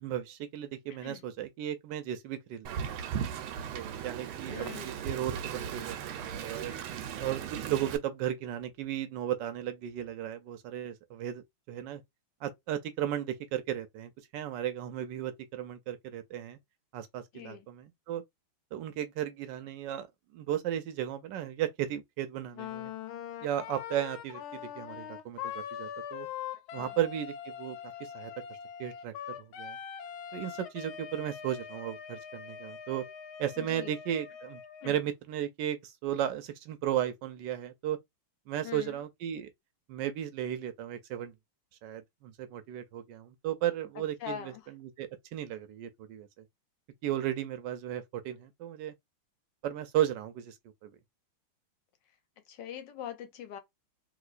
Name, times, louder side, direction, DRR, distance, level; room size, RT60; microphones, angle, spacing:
voice 1, 0.0-3.0 3.7-4.7 5.0-6.7 7.2-12.0 12.4-16.6 16.9-18.2 18.7-20.1 20.3-22.9 23.4-26.3 26.7-28.3 28.8-29.8 30.3-33.0 33.4-38.0 38.5-39.5 39.9-41.3 41.8-46.3 47.0-48.9 49.6-50.5 50.8-50.9, right 11 dB, 70° right, 1.1 m, -35 dB
Wind, 2.7-8.0, right 8 dB, 90° right, 1.4 m, -37 dB
voice 2, 4.4-4.9 17.3-17.7 26.7-27.0 33.6-33.9 34.8-35.0 38.6-39.0 44.0-44.7 52.5-53.6, left 10 dB, 70° left, 1.2 m, -43 dB
Wind instrument woodwind instrument, 22.5-35.0, left 9 dB, 90° left, 1.5 m, -42 dB
3.3 x 2.9 x 2.4 m
omnidirectional pair, 2.2 m